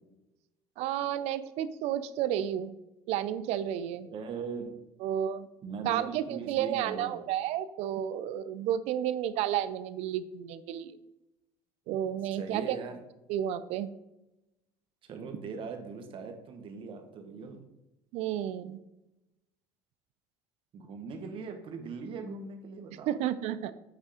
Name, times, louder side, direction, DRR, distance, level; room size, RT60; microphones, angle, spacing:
voice 1, 0.8-2.7 3.1-4.1 5.0-5.5 5.8-11.0 11.9-12.8 13.3-13.9 18.1-18.8 23.1-23.7, right 11 dB, 70° right, 14 dB, 0.5 m, -31 dB
voice 2, 4.0-4.8 5.6-7.2 12.3-13.0 15.0-17.6 20.7-23.2, right 5 dB, 50° right, 5 dB, 1.3 m, -40 dB
8.1 x 3.5 x 5.0 m, 0.94 s
cardioid pair, 110°, 12 cm